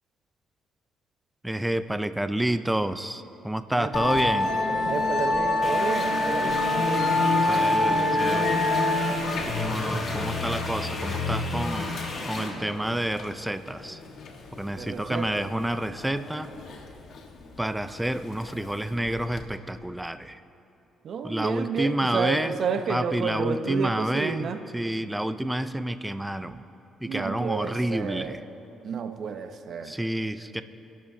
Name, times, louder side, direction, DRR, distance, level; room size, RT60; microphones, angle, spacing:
voice 1, 1.4-4.5 7.5-8.6 9.5-12.0 12.3-14.0 14.5-16.5 17.6-20.4 21.2-22.5 22.9-24.5 24.7-26.7 27.0-28.4 29.8-30.6, right 1 dB, 5° right, 11 dB, 0.5 m, -29 dB
voice 2, 3.7-4.1 4.9-7.7 14.8-15.5 21.0-24.6 27.1-28.4 28.8-30.0, right 6 dB, 60° right, 7 dB, 0.9 m, -31 dB
Musical instrument, 3.9-19.4, left 2 dB, 70° left, 1.5 m, -27 dB
sound 1, 5.6-12.5, left 2 dB, 50° left, 2.3 m, -35 dB
24.5 x 12.0 x 2.8 m, 2.8 s
cardioid pair, 90°, 0 cm